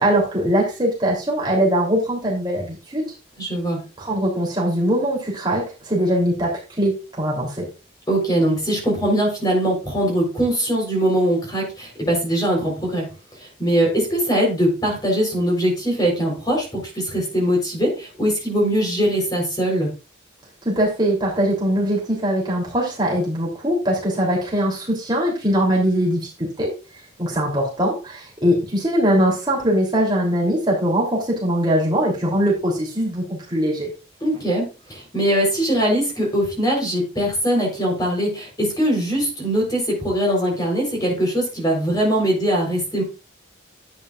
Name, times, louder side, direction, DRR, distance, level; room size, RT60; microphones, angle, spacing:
voice 1, 0.0-3.0 4.0-6.5 6.8-7.7 20.6-26.3 26.6-26.7 27.2-33.9, equal, 25° right, -3 dB, 3.1 m, -21 dB
voice 2, 3.4-3.8 8.1-13.1 13.4-19.9 34.2-43.0, right 1 dB, 20° left, -1 dB, 3.9 m, -21 dB
11.0 x 8.9 x 2.4 m, 0.31 s
head